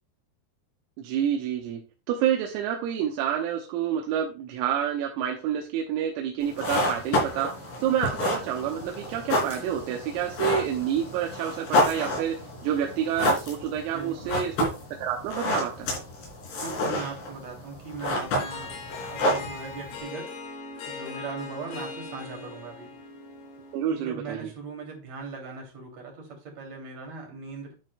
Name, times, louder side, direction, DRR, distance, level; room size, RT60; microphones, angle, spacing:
voice 1, 1.0-1.8 2.1-7.5 7.8-12.4 12.6-14.7 15.0-15.9 23.7-24.5, right 9 dB, 90° right, 1 dB, 3.6 m, -28 dB
sound 1, 6.4-20.0, left 1 dB, 60° left, 4.8 m, -29 dB
voice 2, 13.9-14.4 16.6-18.8 19.1-20.3 20.9-22.9 23.9-27.7, right 4 dB, 40° right, 1 dB, 3.1 m, -39 dB
Harp, 18.2-23.9, left 4 dB, 90° left, 4.9 m, -40 dB
11.5 x 7.5 x 2.2 m, 0.31 s
omnidirectional pair, 6.0 m